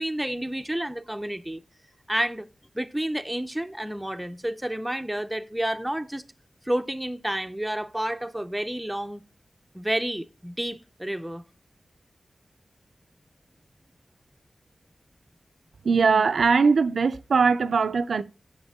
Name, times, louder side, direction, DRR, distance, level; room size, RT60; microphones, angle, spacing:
voice 1, 0.0-1.6 2.1-2.5 2.7-6.2 6.7-9.2 9.7-11.4, right 1 dB, 5° right, 0.6 m, -30 dB
voice 2, 15.8-18.2, right 5 dB, 90° right, 0.4 m, -21 dB
8.0 x 6.7 x 3.5 m
wide cardioid pair, 80°, 0 cm